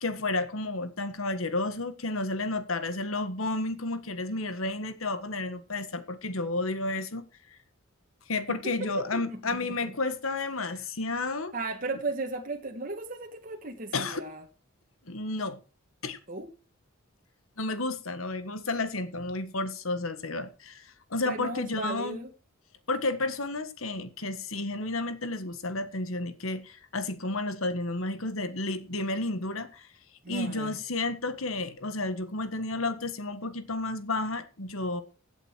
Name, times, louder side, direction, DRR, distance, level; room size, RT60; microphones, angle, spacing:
voice 1, 0.0-7.2 8.3-11.5 13.9-14.2 15.0-15.6 16.0-16.2 17.6-22.2 22.9-29.9 30.3-35.0, left 2 dB, 80° left, 1.7 m, -31 dB
voice 2, 8.5-9.9 10.7-10.9 11.5-14.4 16.3-16.5 21.3-22.3 30.2-30.8, right 2 dB, 40° right, 1.8 m, -36 dB
16.0 x 8.2 x 4.7 m
head